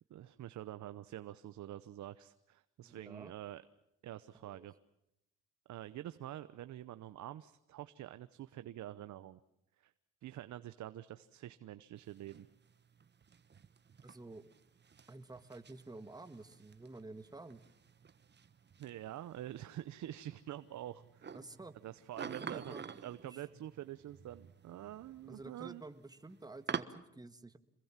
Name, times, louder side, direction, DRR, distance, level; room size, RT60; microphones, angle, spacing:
voice 1, 0.1-3.6 4.0-4.7 5.7-9.4 9.8-9.9 10.2-12.5 18.8-21.3 21.8-22.7 23.0-25.8, right 13 dB, 70° right, 13 dB, 0.9 m, -47 dB
voice 2, 2.8-3.3 4.3-4.7 14.0-14.4 15.1-17.6 21.3-21.8 22.2-22.9 23.2-23.4 25.3-27.6, right 2 dB, 15° right, 10 dB, 1.6 m, -51 dB
sound 1, 12.0-26.8, right 6 dB, 35° right, 1.3 m, -49 dB
27.5 x 21.5 x 7.4 m, 0.84 s
cardioid pair, 90°, 30 cm